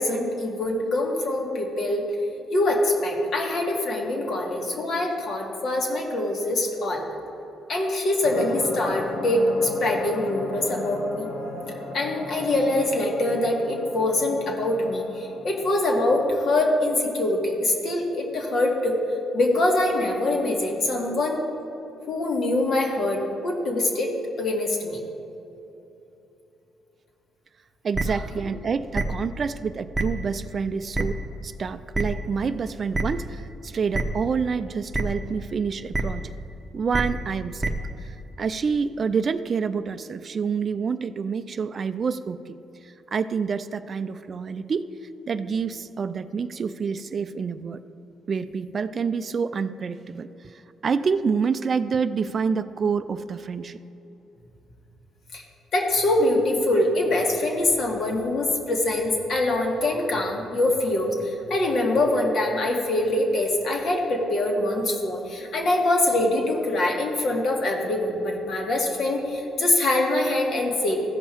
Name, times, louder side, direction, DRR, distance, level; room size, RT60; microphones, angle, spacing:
voice 1, 0.0-2.0 2.5-7.1 7.7-11.3 11.9-19.0 19.3-21.5 22.1-24.1 24.4-25.0 55.3-55.4 55.7-71.1, left 1 dB, 60° left, 0 dB, 1.7 m, -24 dB
sound 1, 8.2-15.7, left 2 dB, 85° left, 0.9 m, -35 dB
voice 2, 27.8-31.2 31.4-36.3 36.7-37.7 38.0-42.6 42.8-44.9 45.3-47.8 48.3-53.8, right 5 dB, 45° right, 12 dB, 0.4 m, -27 dB
sound 2, 27.9-28.0 28.9-29.0 29.9-30.0 30.9-31.0 31.9-32.0 32.9-33.0 33.9-34.0 34.9-35.0 35.9-36.0 36.9-37.0 37.6-37.7, right 2 dB, 10° right, 0.9 m, -24 dB
15.0 x 5.5 x 4.5 m, 2.9 s
cardioid pair, 90°, 0 cm